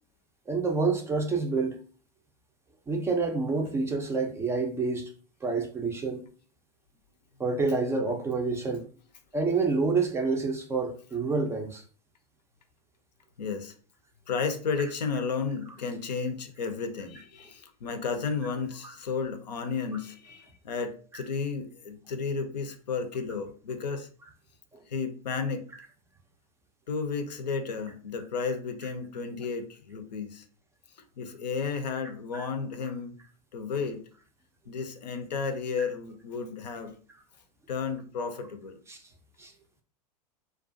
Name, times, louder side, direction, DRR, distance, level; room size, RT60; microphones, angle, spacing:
voice 1, 0.5-1.8 2.9-5.1 5.4-6.3 7.4-8.8 9.3-11.8 32.3-32.4 38.9-39.0 39.4-39.5, right 4 dB, 10° right, 0.4 m, -28 dB
voice 2, 8.6-8.9 13.4-13.7 14.3-24.1 24.9-25.6 26.9-30.4 31.2-33.2 33.5-34.0 34.7-36.9 37.7-38.8, left 5 dB, 80° left, 0.5 m, -33 dB
2.4 x 2.3 x 2.5 m
hypercardioid pair, 95°, 21 cm